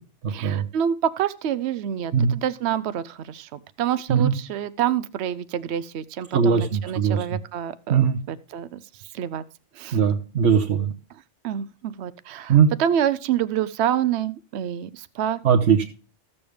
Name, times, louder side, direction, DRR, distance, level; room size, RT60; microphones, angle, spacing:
voice 1, 0.3-8.8 9.1-9.4 9.8-10.0 11.4-15.4, right 10 dB, 70° right, 14 dB, 0.9 m, -27 dB
voice 2, 6.3-7.3 7.9-8.2 9.9-10.9 12.5-12.7 15.4-15.8, right 7 dB, 85° right, 2 dB, 1.3 m, -19 dB
14.0 x 7.1 x 3.4 m, 0.37 s
omnidirectional pair, 1.2 m